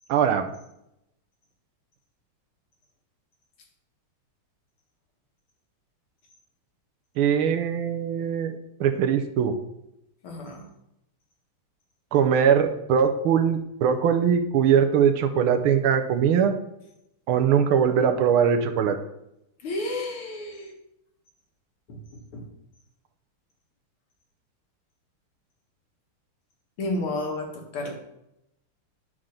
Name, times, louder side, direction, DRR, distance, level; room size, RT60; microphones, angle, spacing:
voice 1, 0.1-0.5 7.2-9.6 12.1-16.5 17.3-19.0, right 7 dB, 80° right, 6 dB, 1.6 m, -21 dB
voice 2, 10.2-10.6 19.6-20.7 26.8-27.9, left 2 dB, 80° left, 1 dB, 2.5 m, -31 dB
10.5 x 3.7 x 6.5 m, 0.83 s
omnidirectional pair, 2.4 m